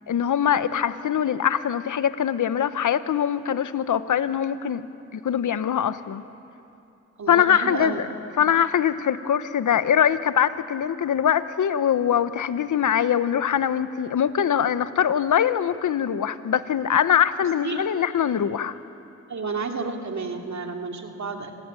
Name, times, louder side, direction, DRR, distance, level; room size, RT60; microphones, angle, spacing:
voice 1, 0.1-4.8 5.1-6.2 7.3-8.1 8.4-18.8, left 9 dB, 75° left, 13 dB, 1.0 m, -22 dB
voice 2, 7.2-8.0 17.6-17.8 19.3-21.5, right 4 dB, 65° right, 3 dB, 2.8 m, -31 dB
26.0 x 16.0 x 9.9 m, 2.9 s
supercardioid pair, 40°, 30 cm